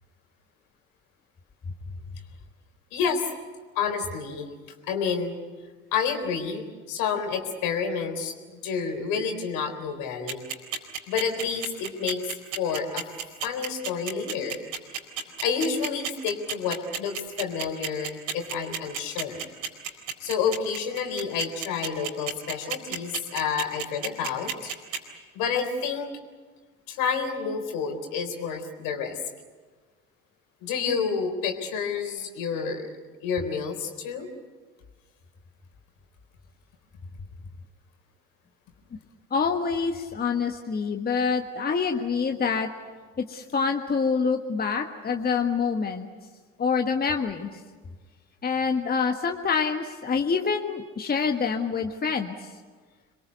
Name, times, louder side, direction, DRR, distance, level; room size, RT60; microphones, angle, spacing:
voice 1, 2.9-3.3 3.8-4.5 4.9-5.3 5.9-10.4 11.1-12.2 12.6-13.0 13.4-14.6 15.4-19.5 20.2-24.7 25.3-26.2 26.9-29.2 30.6-32.9 33.2-34.3, left 6 dB, 60° left, 5 dB, 3.9 m, -29 dB
sound 1, 10.3-25.0, right 8 dB, 60° right, 4.4 m, -31 dB
voice 2, 39.3-42.7 43.2-46.1 46.6-47.6 48.4-52.5, left 5 dB, 25° left, 4 dB, 1.6 m, -26 dB
27.0 x 22.0 x 8.1 m, 1.4 s
figure-of-eight pair, 65°, 38 cm